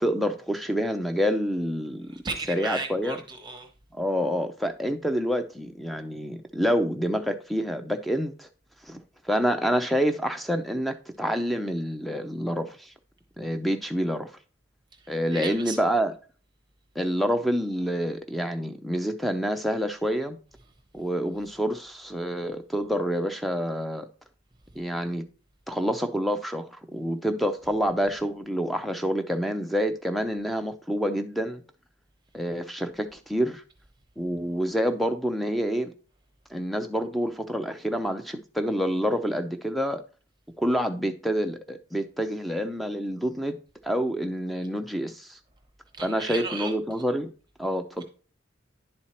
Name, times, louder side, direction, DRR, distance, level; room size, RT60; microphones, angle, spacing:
voice 1, 0.0-2.2 2.5-3.2 3.9-8.5 8.8-9.0 9.3-12.9 13.4-14.3 15.1-16.1 17.0-20.4 20.9-24.1 24.8-25.2 25.7-31.6 32.3-33.6 34.2-35.9 36.5-40.0 40.6-43.6 43.8-45.4 46.0-47.3 47.6-48.0, equal, ahead, 0.4 m, -27 dB
voice 2, 2.1-3.7 14.9-15.8 45.9-46.7, right 4 dB, 20° right, 0.8 m, -35 dB
10.5 x 4.3 x 2.9 m
head